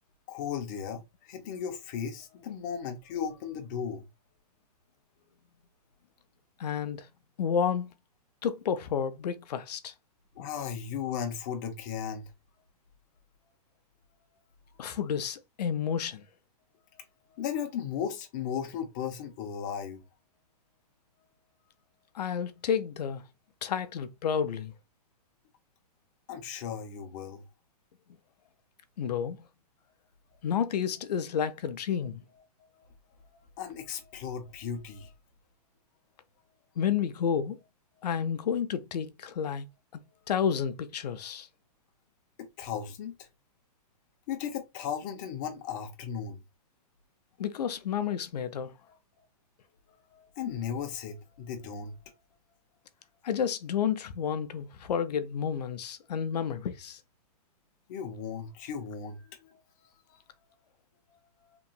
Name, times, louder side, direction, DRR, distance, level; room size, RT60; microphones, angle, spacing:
voice 1, 0.3-4.0 10.4-12.3 17.3-20.0 26.3-27.4 32.8-32.9 33.2-35.1 42.6-43.2 44.3-46.4 48.9-49.0 50.1-52.1 57.9-59.6, left 7 dB, 30° left, 0.5 m, -36 dB
voice 2, 6.6-7.1 7.4-7.9 8.4-9.9 14.8-16.2 22.1-23.2 23.6-24.7 29.0-29.5 30.4-32.2 36.8-37.6 38.0-39.7 40.3-41.5 47.4-48.7 53.2-57.0, left 7 dB, 80° left, 0.5 m, -30 dB
3.0 x 2.7 x 2.2 m
hypercardioid pair, 165°, 20 cm